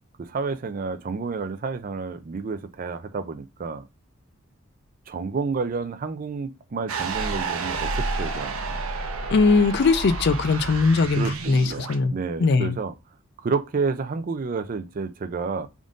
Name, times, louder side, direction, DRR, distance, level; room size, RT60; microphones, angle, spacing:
voice 1, 0.2-3.9 5.1-8.5 11.2-12.9 13.4-15.7, right 4 dB, 40° right, 0.4 m, -30 dB
sound 1, 6.9-12.0, right 3 dB, 90° right, 0.7 m, -30 dB
voice 2, 9.3-12.1 12.4-12.8, left 4 dB, 55° left, 0.4 m, -20 dB
3.6 x 2.5 x 3.7 m
head